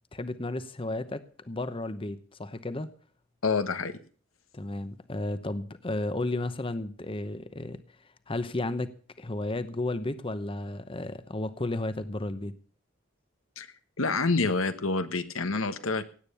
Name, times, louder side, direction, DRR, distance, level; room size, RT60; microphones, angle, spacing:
voice 1, 0.1-2.9 4.5-7.8 8.3-12.5, left 2 dB, 25° left, 0.9 m, -33 dB
voice 2, 3.4-3.9 13.6-13.7 14.0-16.0, left 3 dB, 90° left, 1.3 m, -27 dB
17.0 x 8.9 x 6.8 m
head